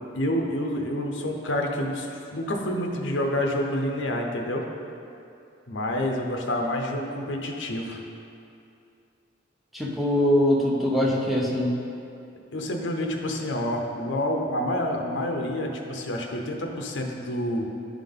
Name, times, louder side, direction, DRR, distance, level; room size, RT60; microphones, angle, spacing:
voice 1, 0.0-4.6 5.7-8.0 12.5-17.7, left 1 dB, 70° left, 1 dB, 0.8 m, -28 dB
voice 2, 9.7-11.8, left 1 dB, ahead, -4 dB, 0.7 m, -22 dB
11.0 x 3.7 x 3.7 m, 2.7 s
head